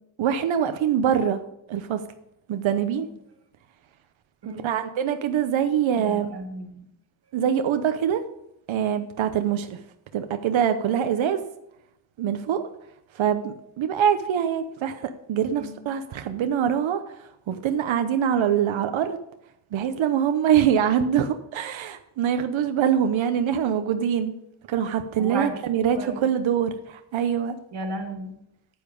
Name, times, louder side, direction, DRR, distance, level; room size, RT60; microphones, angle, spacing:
voice 1, 0.2-1.4 1.7-2.0 2.5-3.1 4.6-6.3 7.3-8.2 8.7-9.8 10.1-11.4 12.2-12.7 13.1-19.2 19.7-24.3 24.7-27.5, right 8 dB, 90° right, 8 dB, 0.9 m, -24 dB
voice 2, 6.0-6.9 15.5-15.8 25.2-25.5 25.9-26.3 27.7-28.3, right 2 dB, 60° right, 4 dB, 2.3 m, -34 dB
9.7 x 9.1 x 5.3 m, 0.81 s
wide cardioid pair, 145°, 46 cm